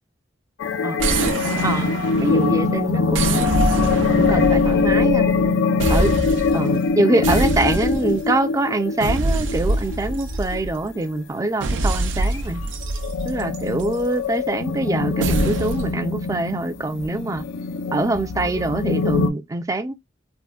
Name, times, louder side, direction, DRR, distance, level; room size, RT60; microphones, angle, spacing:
sound 1, 0.6-11.2 11.8-11.9 12.2-12.4 12.8-19.3, left 4 dB, 85° left, 0.4 m, -22 dB
voice 1, 0.8-1.4 1.6-1.9 2.2-3.5 4.2-5.3 5.9-6.1 6.5-12.6 13.3-17.4 17.9-19.9, right 2 dB, 20° right, 0.3 m, -24 dB
sound 2, 1.0-2.6 3.1-5.5 5.8-6.6 7.2-8.3 9.0-10.9 11.6-14.0 15.2-16.0, right 2 dB, 85° right, 0.5 m, -25 dB
3.5 x 2.1 x 2.3 m
head